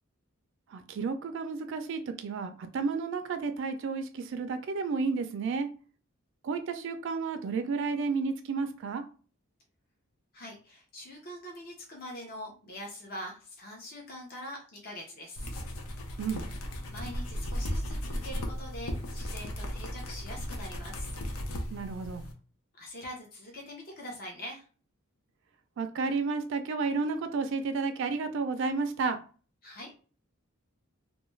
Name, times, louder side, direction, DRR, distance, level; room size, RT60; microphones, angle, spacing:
voice 1, 0.7-5.7 6.4-9.0 16.2-16.4 21.7-22.2 25.8-29.2, right 4 dB, 60° right, 8 dB, 0.3 m, -32 dB
voice 2, 10.3-15.5 16.9-21.2 22.7-24.6 29.6-29.9, left 1 dB, 45° left, -1 dB, 0.7 m, -43 dB
sound 1, 15.4-22.3, equal, 80° left, 0.6 m, -36 dB
2.3 x 2.2 x 3.1 m, 0.37 s
head